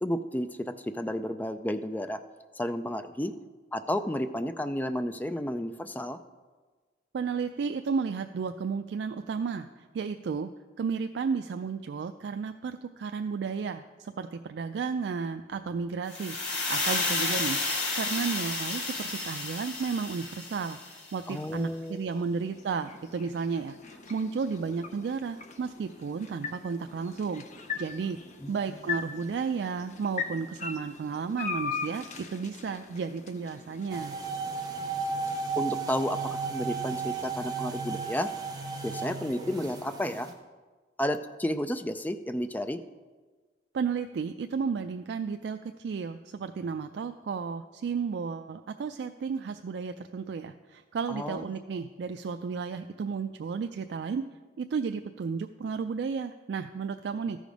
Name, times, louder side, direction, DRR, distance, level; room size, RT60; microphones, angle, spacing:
voice 1, 0.0-2.2 2.6-3.3 3.7-6.2 21.3-22.2 28.4-28.5 35.6-38.3 38.8-40.3 41.0-42.8 51.1-51.5, left 1 dB, 10° left, 10 dB, 0.3 m, -32 dB
voice 2, 7.1-10.5 10.8-16.4 16.7-17.6 17.9-20.8 21.1-27.4 27.8-28.2 28.5-34.2 43.7-54.2 54.6-57.4, right 5 dB, 70° right, 8 dB, 0.3 m, -33 dB
sound 1, 16.1-21.1, left 3 dB, 80° left, 2.3 m, -31 dB
sound 2, 21.5-37.5, left 5 dB, 40° left, 0.7 m, -41 dB
sound 3, 33.9-40.3, right 5 dB, 20° right, 0.9 m, -34 dB
13.5 x 5.0 x 5.1 m, 1.4 s
head